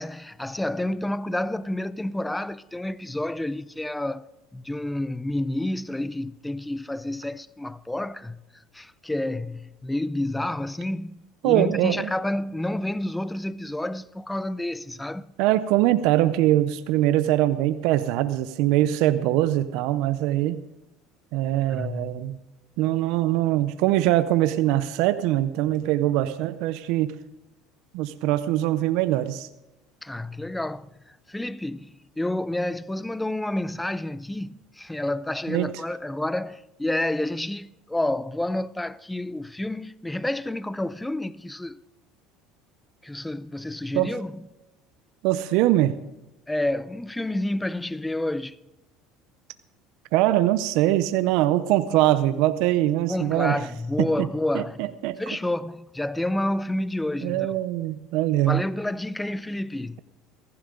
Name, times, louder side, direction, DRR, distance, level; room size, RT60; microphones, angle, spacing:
voice 1, 0.0-4.3 4.5-8.4 8.7-15.3 21.7-22.3 30.0-41.8 43.0-44.4 46.5-48.6 53.1-54.8 55.2-57.5 58.5-60.0, left 1 dB, 5° left, 0.5 m, -29 dB
voice 2, 11.4-12.1 15.4-20.6 21.3-22.4 22.8-27.1 27.9-29.5 35.5-35.7 44.0-44.1 45.2-46.0 50.1-53.6 54.0-54.1 54.5-55.2 57.2-58.6, right 14 dB, 70° right, 0.6 m, -22 dB
15.5 x 15.0 x 3.8 m
supercardioid pair, 105°, 0 cm